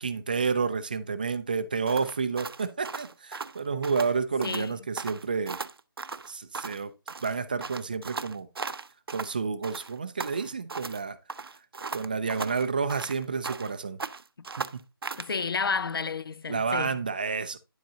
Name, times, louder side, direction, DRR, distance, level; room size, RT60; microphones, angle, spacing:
voice 1, 0.0-5.6 6.3-6.9 7.2-8.5 9.1-11.2 11.9-14.0 14.6-14.8 16.5-17.6, right 5 dB, 20° right, 0.4 m, -30 dB
sound 1, 1.9-4.1 4.4-4.7 5.0-6.8 7.1-9.3 9.6-11.0 11.3-13.7 14.0-15.3, right 4 dB, 75° right, 0.6 m, -37 dB
voice 2, 4.4-4.7 15.2-17.0, left 5 dB, 70° left, 0.5 m, -31 dB
10.0 x 7.6 x 2.7 m
figure-of-eight pair, 170°, 12 cm